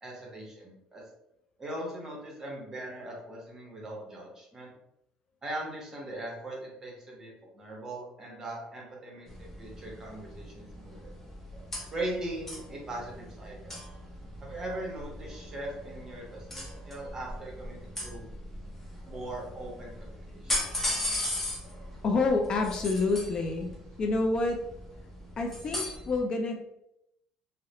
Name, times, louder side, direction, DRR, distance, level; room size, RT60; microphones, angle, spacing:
voice 1, 0.0-1.0 1.6-4.7 5.4-11.1 11.9-13.8 14.4-18.2 19.0-20.7, right 1 dB, 25° right, -2 dB, 0.9 m, -40 dB
sound 1, 9.3-26.2, left 1 dB, 10° left, 0.7 m, -39 dB
voice 2, 22.0-23.7 24.0-24.6 25.4-26.6, left 3 dB, 40° left, 3 dB, 0.3 m, -28 dB
2.4 x 2.0 x 2.9 m, 0.81 s
cardioid pair, 120°, 2 cm